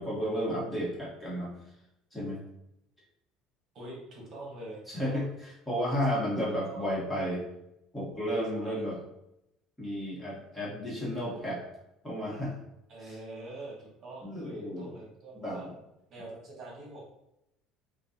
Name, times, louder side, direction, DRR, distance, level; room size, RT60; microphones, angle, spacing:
voice 1, 0.0-1.5 2.1-2.4 4.9-7.5 7.9-9.0 9.8-11.6 12.0-12.6 13.0-13.1 14.2-14.9 15.3-15.7, equal, 10° left, -6 dB, 1.4 m, -32 dB
voice 2, 3.7-5.3 5.8-6.2 6.5-6.9 8.5-8.9 12.9-15.6 16.1-17.1, right 2 dB, 40° right, -3 dB, 1.4 m, -45 dB
6.2 x 2.4 x 2.9 m, 0.84 s
cardioid pair, 135°, 0 cm